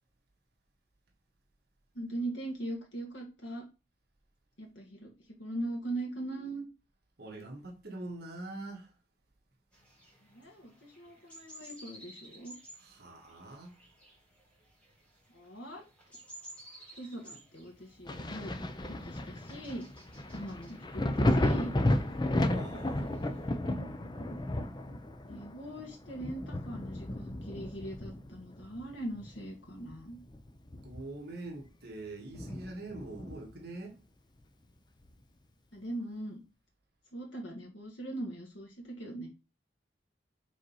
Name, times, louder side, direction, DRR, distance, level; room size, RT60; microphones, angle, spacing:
voice 1, 1.9-3.6 4.6-6.7 10.3-12.5 15.3-15.8 17.0-18.5 18.9-20.0 20.3-21.7 25.3-30.2 35.7-36.4 37.1-39.3, right 1 dB, 85° left, 1.8 m, -41 dB
voice 2, 7.2-9.0 12.7-13.8 22.3-23.3 30.8-34.0, right 2 dB, 55° right, 1.8 m, -44 dB
sound 1, 9.7-23.5, right 1 dB, 5° left, 2.3 m, -56 dB
Thunder, 18.1-29.4 29.8-31.3 31.7-31.8 32.3-33.6 35.0-35.1, left 1 dB, 25° left, 0.6 m, -33 dB
5.2 x 4.4 x 5.6 m
head